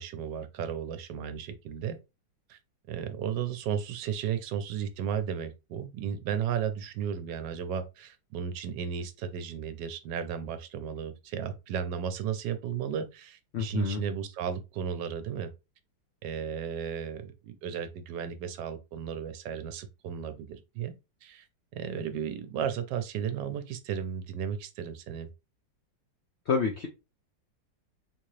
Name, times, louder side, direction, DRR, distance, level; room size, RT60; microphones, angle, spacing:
voice 1, 0.0-2.0 2.5-2.6 2.9-15.5 16.2-20.9 21.2-21.5 21.7-25.3, right 8 dB, 75° right, 1.2 m, -34 dB
voice 2, 13.5-14.0 26.5-26.9, left 5 dB, 70° left, 0.6 m, -28 dB
3.8 x 2.8 x 3.1 m
omnidirectional pair, 1.9 m